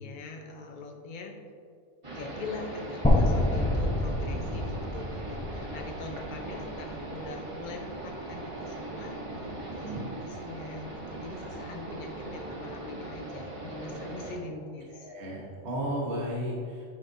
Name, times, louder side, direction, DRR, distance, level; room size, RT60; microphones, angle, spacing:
voice 1, 0.0-1.4 2.1-9.9 10.2-15.1, left 3 dB, 45° left, 2 dB, 0.8 m, -42 dB
sound 1, 2.0-14.4, right 2 dB, 25° right, 0.9 m, -40 dB
sound 2, 3.0-7.1, left 1 dB, 10° left, 0.4 m, -27 dB
voice 2, 15.0-16.9, equal, 60° right, -5 dB, 1.6 m, -34 dB
9.7 x 5.0 x 2.7 m, 2.3 s
omnidirectional pair, 1.3 m